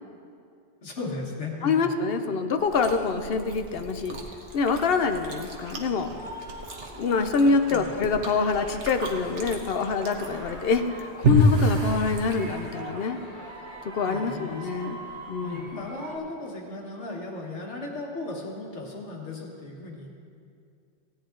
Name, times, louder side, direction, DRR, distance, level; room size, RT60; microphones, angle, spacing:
voice 1, 0.8-1.9 7.7-7.9 13.9-14.7 15.4-20.1, left 3 dB, 85° left, 0 dB, 1.8 m, -36 dB
voice 2, 1.6-4.2 4.5-6.1 6.9-13.2 13.9-15.0 15.3-15.8, left 4 dB, 60° left, 7 dB, 0.9 m, -25 dB
Chewing mastication, 2.6-12.8, equal, 90° right, 1.4 m, -30 dB
sound 1, 4.5-16.2, right 1 dB, 45° right, 1.8 m, -43 dB
16.5 x 9.8 x 3.8 m, 2.4 s
omnidirectional pair, 1.2 m